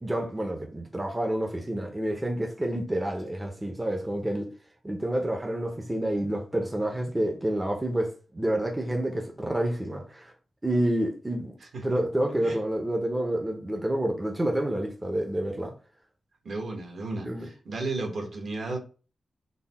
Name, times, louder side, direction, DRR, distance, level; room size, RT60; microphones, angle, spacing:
voice 1, 0.0-4.5 4.8-10.3 10.6-11.5 11.8-15.7 17.2-17.5, right 1 dB, 15° right, 0.5 m, -28 dB
voice 2, 16.4-18.8, right 2 dB, 60° right, 1.0 m, -34 dB
4.0 x 2.1 x 3.9 m
wide cardioid pair, 175°, 0 cm